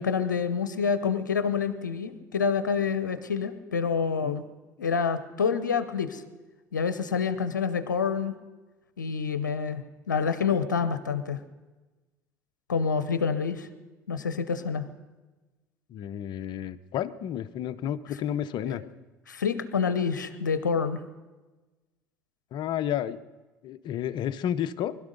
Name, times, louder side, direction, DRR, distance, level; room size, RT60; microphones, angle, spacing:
voice 1, 0.0-4.4 4.8-6.2 6.7-8.3 9.0-11.4 12.7-13.7 14.1-14.9 18.6-18.8 19.3-21.0, left 6 dB, 85° left, 11 dB, 0.8 m, -27 dB
voice 2, 15.9-18.8 22.5-23.2 23.6-25.0, left 10 dB, 50° left, 14 dB, 0.8 m, -31 dB
21.0 x 12.5 x 5.2 m, 1.2 s
figure-of-eight pair, 60°, 10 cm